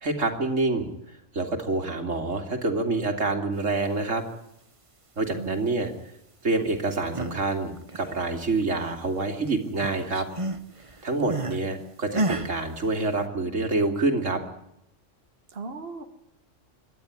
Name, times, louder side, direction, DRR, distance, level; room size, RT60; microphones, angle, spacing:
voice 1, 0.0-0.9 1.3-4.2 5.2-5.9 6.4-10.3 11.0-14.4, right 3 dB, 85° right, 4 dB, 3.0 m, -27 dB
voice 2, 5.3-5.7 15.5-16.0, right 4 dB, 50° right, 5 dB, 1.8 m, -37 dB
sound 1, 6.9-7.4 7.8-9.2 9.5-11.6 12.1-12.5, right 2 dB, 25° right, 1.3 m, -31 dB
28.0 x 12.0 x 9.7 m, 0.82 s
omnidirectional pair, 1.3 m